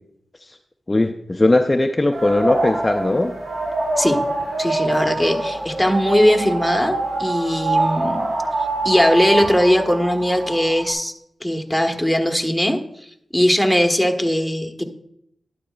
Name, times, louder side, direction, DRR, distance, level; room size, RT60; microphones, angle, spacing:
voice 1, 0.9-3.3, left 2 dB, 25° left, 5 dB, 0.5 m, -19 dB
sound 1, 2.1-10.9, right 2 dB, 75° right, 3.9 m, -24 dB
voice 2, 4.6-8.2 8.8-11.1 11.4-12.8 13.3-14.8, equal, 5° left, 4 dB, 1.3 m, -19 dB
12.0 x 10.0 x 2.4 m, 0.72 s
cardioid pair, 55°, 0 cm